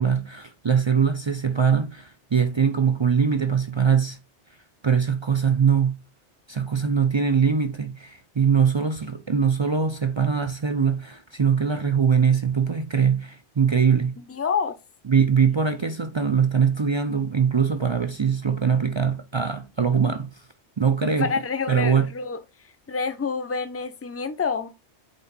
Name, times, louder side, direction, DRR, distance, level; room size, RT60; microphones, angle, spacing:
voice 1, 0.0-4.2 4.8-6.0 6.5-14.2 15.1-20.4 20.8-21.3 21.7-22.1, right 6 dB, 50° right, 0.3 m, -22 dB
voice 2, 14.3-14.7 21.0-22.4 22.9-24.7, left 5 dB, 15° left, 0.5 m, -27 dB
8.1 x 4.3 x 4.1 m
omnidirectional pair, 1.2 m